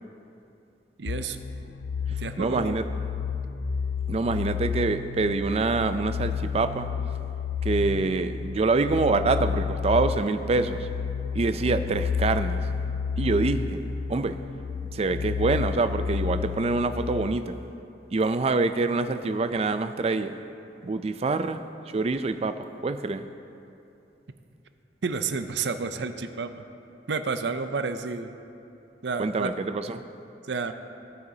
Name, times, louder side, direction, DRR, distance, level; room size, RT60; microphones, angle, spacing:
voice 1, 1.0-1.4 2.2-2.8 25.0-26.6 27.1-28.3 29.0-29.5 30.5-30.7, right 4 dB, 80° right, 9 dB, 0.6 m, -30 dB
sound 1, 1.1-17.3, left 6 dB, 65° left, 0.4 m, -31 dB
voice 2, 2.4-2.8 4.1-6.9 7.6-10.9 11.3-12.6 13.2-13.8 14.1-14.4 14.9-17.6 18.1-20.4 20.8-21.6 21.9-23.2 29.2-30.0, right 3 dB, 35° right, 10 dB, 0.4 m, -25 dB
16.5 x 9.0 x 2.8 m, 2.7 s
head